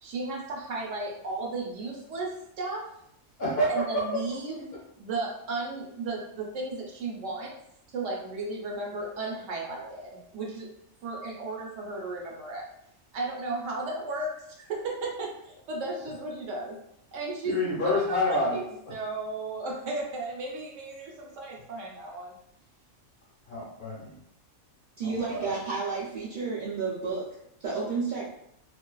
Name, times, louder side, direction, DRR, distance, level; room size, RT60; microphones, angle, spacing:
voice 1, 0.0-2.9 3.7-7.5 7.9-10.7 11.0-12.7 13.1-16.8 17.1-18.6 18.9-22.3, right 3 dB, 70° right, -1 dB, 0.9 m, -35 dB
voice 2, 3.4-4.0 17.4-18.6 23.5-24.2 25.0-25.6, left 1 dB, 55° left, -5 dB, 0.8 m, -28 dB
voice 3, 25.0-28.3, right 4 dB, 90° right, -7 dB, 0.4 m, -31 dB
2.5 x 2.2 x 2.2 m, 0.75 s
omnidirectional pair, 1.4 m